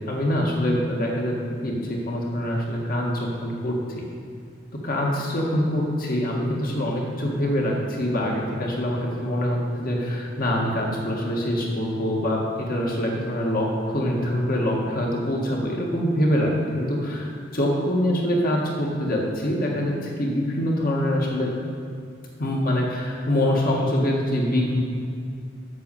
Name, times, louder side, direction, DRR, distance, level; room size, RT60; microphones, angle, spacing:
voice 1, 0.1-1.3 1.6-4.1 4.8-21.5 22.4-24.8, left 1 dB, 50° left, -2 dB, 1.8 m, -24 dB
8.2 x 6.6 x 7.1 m, 2.3 s
head